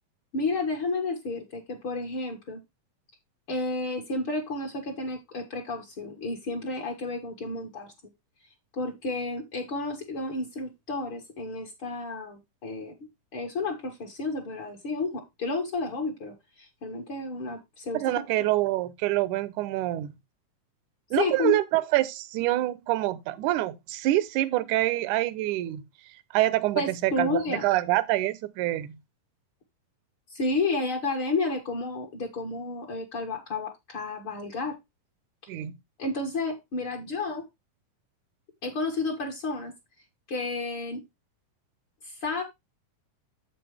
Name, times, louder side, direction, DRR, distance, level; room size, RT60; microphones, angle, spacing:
voice 1, 0.3-2.6 3.5-7.9 8.8-12.9 13.3-18.0 21.2-21.6 26.8-27.7 30.3-34.8 36.0-37.5 38.6-39.7 40.3-41.0 42.0-42.4, left 3 dB, 45° left, 2.0 m, -31 dB
voice 2, 17.9-20.1 21.1-25.8 26.3-29.0 35.5-35.7, right 16 dB, 80° right, 2.1 m, -26 dB
8.1 x 7.8 x 3.3 m
omnidirectional pair, 3.7 m